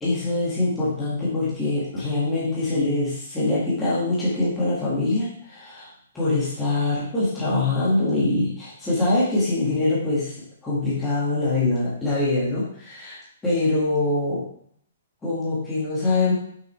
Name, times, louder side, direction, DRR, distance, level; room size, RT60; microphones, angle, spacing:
voice 1, 0.0-5.9 6.1-10.3 10.6-14.4 15.2-16.3, left 2 dB, 10° left, -9 dB, 1.9 m, -24 dB
6.5 x 5.8 x 3.3 m, 0.64 s
hypercardioid pair, 170°, 0 cm